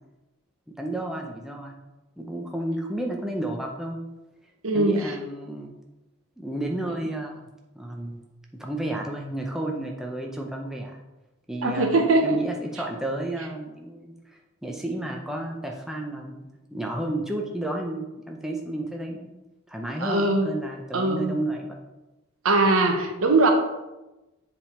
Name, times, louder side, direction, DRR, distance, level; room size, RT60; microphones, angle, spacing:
voice 1, 0.7-1.7 2.2-4.0 4.7-5.7 6.4-7.4 7.7-8.2 8.5-11.0 11.5-19.3 19.7-21.8, right 1 dB, ahead, 0 dB, 0.6 m, -32 dB
voice 2, 4.6-5.1 11.6-12.4 20.0-20.5 20.9-21.4 22.4-23.5, right 2 dB, 80° right, 4 dB, 1.0 m, -21 dB
7.2 x 3.5 x 4.3 m, 1.0 s
head